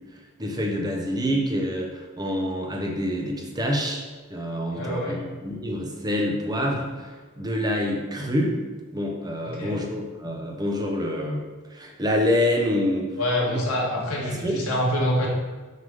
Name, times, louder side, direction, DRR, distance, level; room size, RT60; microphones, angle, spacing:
voice 1, 0.1-4.0 4.3-7.1 7.4-8.6 8.9-13.1 13.5-13.6 14.2-14.6, left 1 dB, 20° right, 0 dB, 0.9 m, -27 dB
voice 2, 4.7-5.2 9.4-9.8 13.2-15.3, left 1 dB, 80° left, -3 dB, 1.7 m, -26 dB
6.5 x 3.6 x 5.4 m, 1.4 s
head